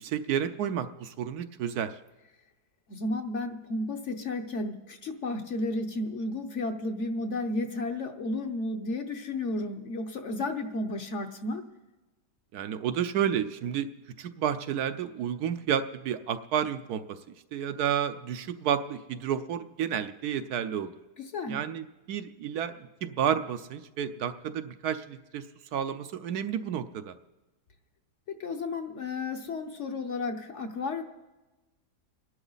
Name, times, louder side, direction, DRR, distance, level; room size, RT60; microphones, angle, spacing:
voice 1, 0.0-1.9 12.5-13.9 14.2-17.2 17.5-20.9 21.5-25.4 25.7-27.1, right 9 dB, 75° right, 10 dB, 1.2 m, -31 dB
voice 2, 2.9-11.6 21.2-21.6 28.3-31.0, left 2 dB, 50° left, 5 dB, 1.1 m, -33 dB
26.5 x 11.0 x 4.0 m, 1.1 s
omnidirectional pair, 1.7 m